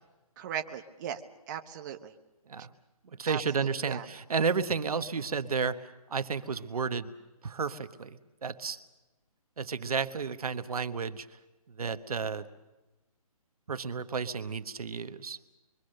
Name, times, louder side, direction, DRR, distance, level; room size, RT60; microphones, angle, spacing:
voice 1, 0.4-1.2 1.5-2.1 3.2-4.1, right 9 dB, 30° right, 6 dB, 1.0 m, -38 dB
voice 2, 3.0-7.1 7.4-8.8 9.6-11.3 11.7-12.5 13.7-15.4, right 5 dB, 70° right, 10 dB, 1.4 m, -32 dB
27.0 x 23.5 x 6.6 m, 1.1 s
hypercardioid pair, 155°, 19 cm